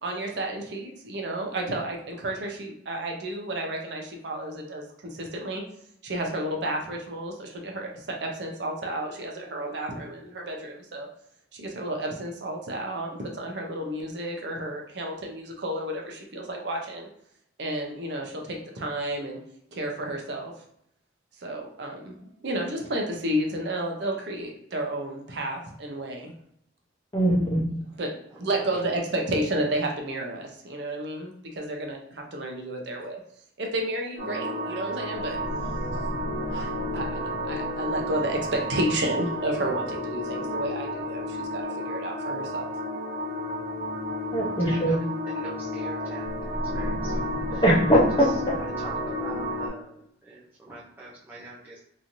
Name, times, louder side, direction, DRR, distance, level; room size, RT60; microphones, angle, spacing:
voice 1, 0.0-5.6 6.0-11.1 11.5-17.1 17.6-19.4 19.7-20.5 21.4-26.3 27.9-33.2 33.6-35.4 36.5-42.7, right 1 dB, 60° right, 1 dB, 0.6 m, -31 dB
voice 2, 27.1-27.6 44.3-44.9 47.6-48.6, right 1 dB, 25° left, -3 dB, 0.7 m, -21 dB
sound 1, 34.2-49.7, equal, 70° left, 1.1 m, -31 dB
voice 3, 45.4-46.2 46.7-46.9 48.8-48.9 49.2-49.8 50.7-51.5, right 2 dB, 10° right, -7 dB, 0.4 m, -42 dB
3.0 x 2.6 x 2.5 m, 0.73 s
head